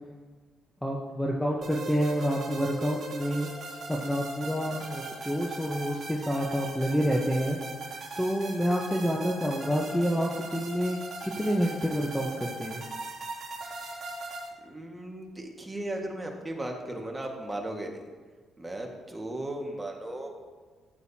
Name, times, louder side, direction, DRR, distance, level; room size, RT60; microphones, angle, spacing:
voice 1, 0.8-3.5 3.9-7.6 8.2-12.8, equal, 5° left, -1 dB, 1.1 m, -28 dB
sound 1, 1.6-14.5, right 3 dB, 50° right, 2.8 m, -39 dB
voice 2, 14.6-18.0 18.6-20.4, right 1 dB, 15° right, 1 dB, 1.8 m, -36 dB
14.0 x 9.1 x 2.9 m, 1.5 s
cardioid pair, 90°, 0 cm